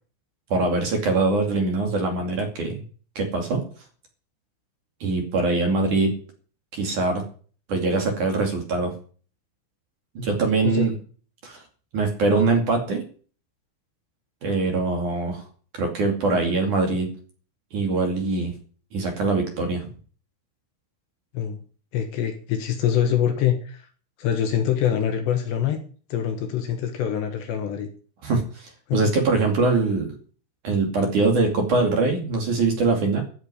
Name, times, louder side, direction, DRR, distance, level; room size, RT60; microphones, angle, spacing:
voice 1, 0.5-2.8 3.2-3.7 5.0-6.2 6.7-7.2 7.7-8.9 10.2-10.9 11.4-11.6 11.9-13.0 14.4-15.4 15.7-17.1 17.7-18.5 18.9-19.8 28.2-30.2 30.6-33.2, right 3 dB, 45° right, 2 dB, 3.3 m, -23 dB
voice 2, 21.9-23.8 24.2-25.8 26.1-27.9 28.9-29.0, left 9 dB, 65° left, 6 dB, 3.2 m, -24 dB
14.0 x 6.7 x 9.8 m, 0.42 s
omnidirectional pair, 5.8 m